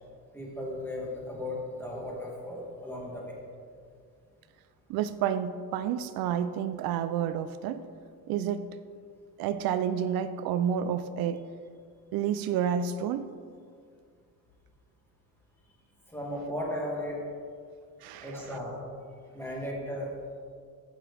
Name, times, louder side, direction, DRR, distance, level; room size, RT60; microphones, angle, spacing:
voice 1, 0.3-3.4 16.1-17.2 18.2-18.9 19.3-20.1, left 1 dB, 5° left, -4 dB, 2.2 m, -36 dB
voice 2, 4.9-7.8 8.3-8.7 9.4-11.4 12.1-13.3 18.0-18.6, right 8 dB, 80° right, 11 dB, 0.5 m, -30 dB
15.0 x 6.1 x 3.4 m, 2.2 s
cardioid pair, 135°, 35 cm